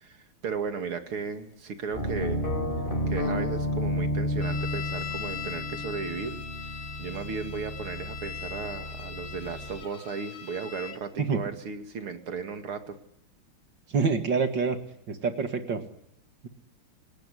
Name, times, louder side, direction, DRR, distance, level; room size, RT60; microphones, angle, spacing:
voice 1, 0.0-2.5 3.1-6.4 7.0-13.0, right 5 dB, 80° right, 7 dB, 3.2 m, -35 dB
sound 1, 1.9-9.8, left 1 dB, 25° left, 4.2 m, -32 dB
sound 2, 4.4-11.0, left 8 dB, 80° left, 3.1 m, -40 dB
voice 2, 13.9-14.8 15.1-15.8, right 5 dB, 55° right, 7 dB, 2.7 m, -26 dB
29.5 x 19.0 x 10.0 m, 0.73 s
omnidirectional pair, 2.4 m